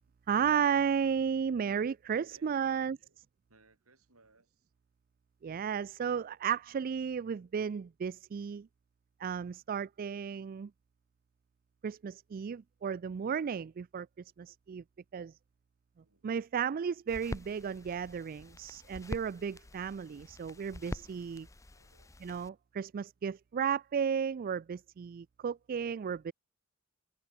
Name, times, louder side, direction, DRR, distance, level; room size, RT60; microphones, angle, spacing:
voice 1, 0.3-3.0 5.4-8.7 9.2-10.7 11.8-14.1 14.4-14.8 15.1-15.4 16.2-21.5 22.2-26.3, right 7 dB, 40° right, 0.3 m, -34 dB
voice 2, 2.3-3.2 3.5-4.7 16.0-16.3 21.7-22.1, right 3 dB, 90° right, 7.3 m, -65 dB
sound 1, 17.1-22.5, left 1 dB, 15° left, 0.6 m, -46 dB
open air
head